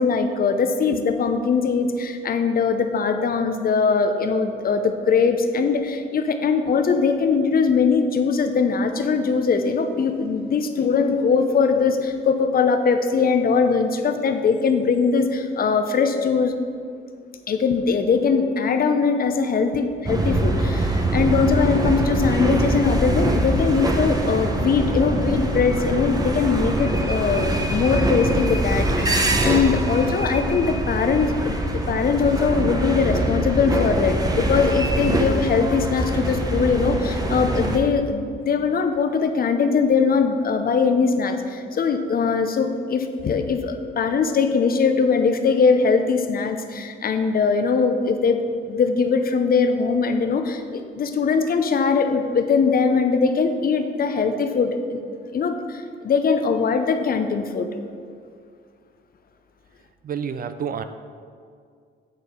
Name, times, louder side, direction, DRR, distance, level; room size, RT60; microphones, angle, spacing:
voice 1, 0.0-16.5 17.5-55.0 55.3-57.7, left 5 dB, 50° left, 7 dB, 0.7 m, -21 dB
sound 1, 20.1-37.8, right 1 dB, 20° right, 0.9 m, -23 dB
voice 2, 60.0-60.8, right 7 dB, 45° right, 10 dB, 0.5 m, -28 dB
8.8 x 4.6 x 5.1 m, 2.2 s
cardioid pair, 90°, 20 cm